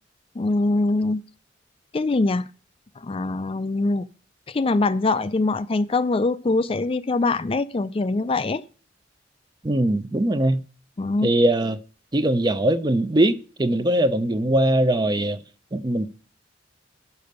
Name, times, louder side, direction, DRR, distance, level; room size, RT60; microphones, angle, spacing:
voice 1, 0.4-1.2 1.9-2.5 3.0-4.1 4.5-8.6 11.0-11.3, left 3 dB, 30° left, 0.4 m, -23 dB
voice 2, 9.6-10.6 11.2-11.8 12.1-15.4 15.7-16.1, right 1 dB, 25° right, 0.6 m, -21 dB
10.5 x 6.9 x 6.5 m
head